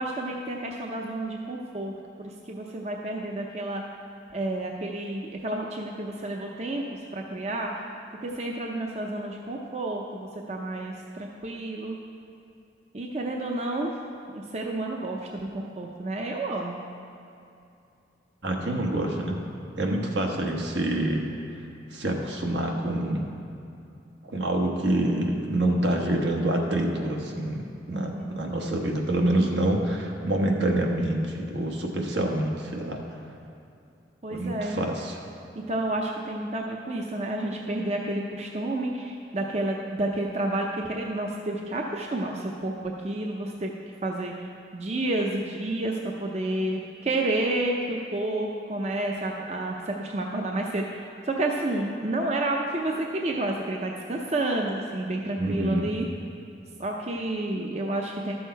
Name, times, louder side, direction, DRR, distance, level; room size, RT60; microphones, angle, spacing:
voice 1, 0.0-3.8 4.3-7.8 8.2-12.0 12.9-13.9 14.3-16.8 20.0-20.2 27.9-28.5 34.2-34.8 35.7-43.7 44.0-44.3 44.7-56.1 56.8-58.3, right 2 dB, 35° right, 0 dB, 0.5 m, -30 dB
voice 2, 18.4-19.4 19.8-21.3 21.9-23.3 24.2-33.0 34.3-35.2 55.4-55.9, right 1 dB, 75° right, 1 dB, 1.2 m, -26 dB
12.5 x 6.5 x 4.5 m, 2.7 s
head